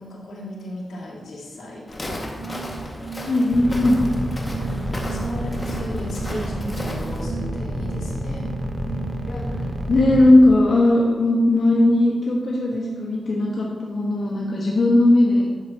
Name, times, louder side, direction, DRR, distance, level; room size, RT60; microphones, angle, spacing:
voice 1, 0.0-2.2 4.7-8.5, left 1 dB, 85° left, -5 dB, 2.3 m, -35 dB
Walk footsteps, 1.9-7.2, left 1 dB, 30° left, 1.8 m, -35 dB
sound 1, 2.2-14.8, right 7 dB, 70° right, 0.4 m, -38 dB
voice 2, 3.0-4.0 9.3-9.4 9.9-15.5, left 1 dB, 65° left, -3 dB, 1.2 m, -18 dB
sound 2, 3.5-10.3, equal, 20° right, 1.0 m, -28 dB
11.5 x 6.6 x 2.9 m, 1.5 s
cardioid pair, 50°, 0 cm